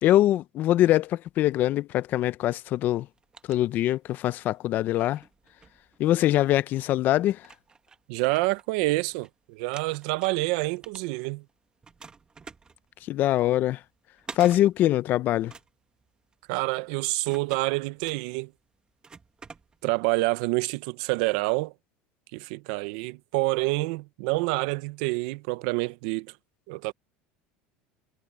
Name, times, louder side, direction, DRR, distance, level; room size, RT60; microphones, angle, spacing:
voice 1, 0.0-3.1 3.5-5.2 6.0-7.5 13.0-13.8 14.3-15.5, left 13 dB, 50° left, 0.8 m, -23 dB
sound 1, 3.0-4.3 4.7-6.4 7.0-7.1 7.4-9.3 9.6-11.5 11.8-20.1, right 5 dB, 20° right, 1.6 m, -49 dB
voice 2, 8.1-11.4 16.5-18.5 19.8-21.7 22.3-26.4 26.7-26.9, right 23 dB, 75° right, 0.9 m, -27 dB
supercardioid pair, 115°, 4 cm